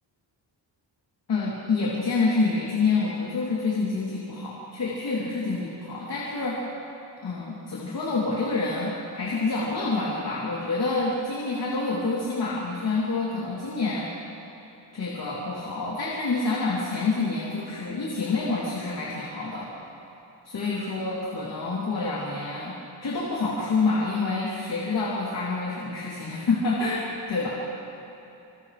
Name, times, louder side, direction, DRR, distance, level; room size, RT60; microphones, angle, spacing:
voice 1, 1.3-6.6 7.2-14.1 14.9-19.6 20.5-27.5, left 3 dB, 55° left, -7 dB, 3.4 m, -27 dB
28.0 x 27.5 x 3.4 m, 2.9 s
wide cardioid pair, 175°, 45 cm